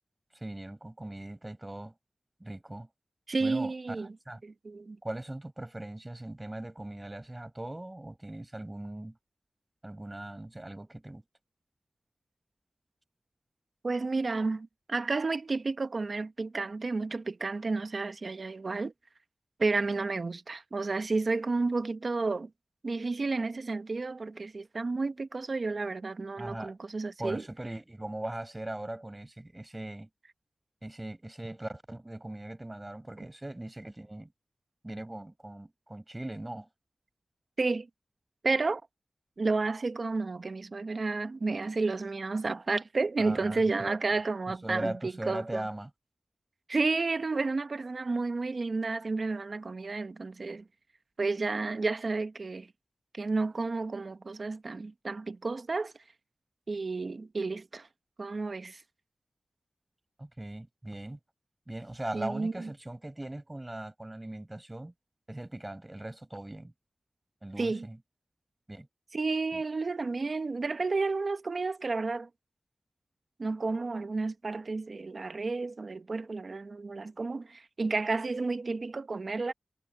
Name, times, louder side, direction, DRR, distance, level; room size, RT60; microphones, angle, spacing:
voice 1, 0.3-1.9 2.4-2.9 3.4-4.0 4.3-4.4 5.0-9.2 9.8-11.2 26.4-26.7 27.2-30.1 30.8-34.3 34.8-36.7 43.2-44.0 44.5-45.9 60.2-61.2 61.7-64.9 65.3-66.7 67.4-68.0 68.7-68.9 69.5-69.6, right 1 dB, 20° right, 5.5 m, -39 dB
voice 2, 3.3-4.1 4.4-5.0 13.8-18.9 19.6-22.5 22.8-27.4 37.6-37.9 38.4-38.8 39.4-45.6 46.7-50.6 51.2-52.7 53.1-55.9 56.7-57.9 58.2-58.8 62.1-62.7 67.6-67.9 69.1-72.3 73.4-79.5, right 3 dB, 60° right, 1.1 m, -31 dB
wide cardioid pair, 90°, 0 cm